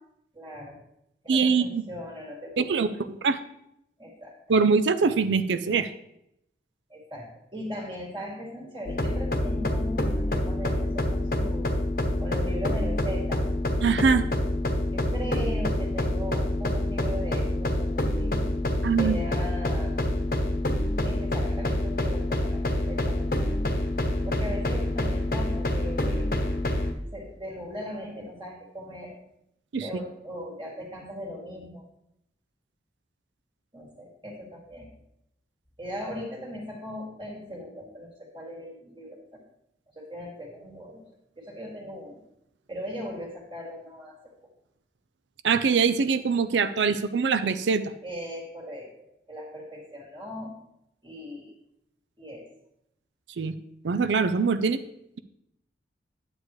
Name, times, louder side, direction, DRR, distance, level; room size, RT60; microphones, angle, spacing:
voice 1, 0.3-0.8 1.2-2.9 4.0-4.4 6.9-11.7 12.2-13.5 14.9-18.5 19.0-20.1 21.0-23.6 24.2-26.3 27.1-29.2 29.8-31.8 33.7-34.9 35.8-39.4 40.0-41.0 41.4-42.2 42.7-44.2 48.0-50.5 51.0-51.5 52.2-52.4, equal, 30° right, -2 dB, 2.0 m, -38 dB
voice 2, 1.3-1.8 2.6-3.4 4.5-5.9 13.8-14.3 18.8-19.2 29.7-29.9 45.4-47.9 53.4-53.5 53.8-54.8, right 5 dB, 90° right, 11 dB, 0.5 m, -23 dB
sound 1, 8.9-26.9, left 1 dB, 55° left, 0.9 m, -27 dB
9.6 x 7.9 x 3.1 m, 0.79 s
head